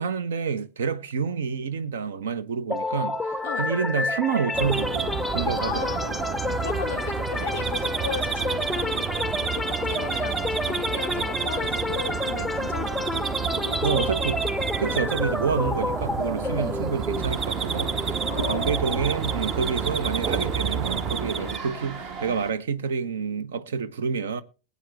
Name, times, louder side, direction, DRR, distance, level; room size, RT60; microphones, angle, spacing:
voice 1, 0.0-5.9 13.8-14.4 14.8-24.4, right 6 dB, 65° right, 0.8 m, -28 dB
sound 1, 2.7-20.5, left 2 dB, ahead, 0.7 m, -30 dB
voice 2, 3.4-3.8 5.6-14.1 14.9-15.0 16.4-16.8 18.3-18.8 19.6-19.8 21.4-21.6, left 13 dB, 55° left, 0.5 m, -37 dB
sound 2, 4.5-21.6, right 6 dB, 25° right, 0.8 m, -30 dB
sound 3, 17.1-22.5, right 5 dB, 45° right, 1.9 m, -38 dB
21.0 x 8.3 x 3.4 m
figure-of-eight pair, 90°, 0 cm